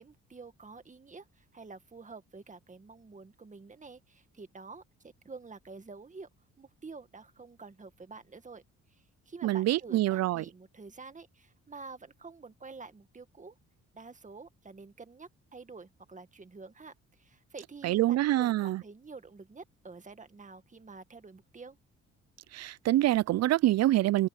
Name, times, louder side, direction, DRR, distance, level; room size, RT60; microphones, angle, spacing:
voice 1, 0.0-6.3 6.6-8.6 8.9-13.6 13.9-21.8, right 4 dB, 25° right, 1.9 m, -48 dB
voice 2, 9.4-10.4 17.8-18.8 22.5-24.3, right 15 dB, 60° right, 0.4 m, -26 dB
cardioid pair, 90°, 30 cm